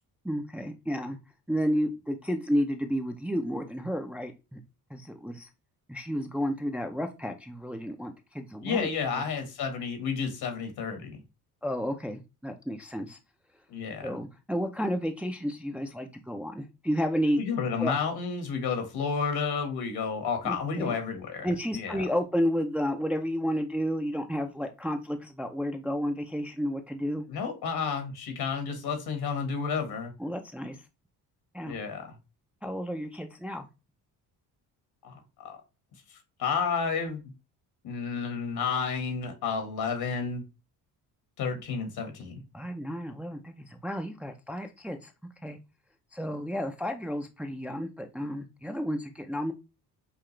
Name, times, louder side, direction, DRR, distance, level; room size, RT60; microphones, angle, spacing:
voice 1, 0.2-1.2 1.5-4.6 4.9-5.5 5.9-8.9 11.6-13.2 14.0-17.4 17.8-17.9 20.4-20.9 21.4-27.2 30.2-30.8 31.5-31.8 32.6-33.7 42.5-45.1 45.4-45.6 46.1-49.5, equal, 5° right, 0.5 m, -31 dB
voice 2, 8.6-11.2 13.7-14.1 17.4-22.0 27.3-30.1 31.6-32.2 35.0-35.6 36.1-37.3 37.8-40.4 41.4-42.4, left 5 dB, 70° left, 1.7 m, -31 dB
5.8 x 2.4 x 3.2 m
cardioid pair, 95°, 39 cm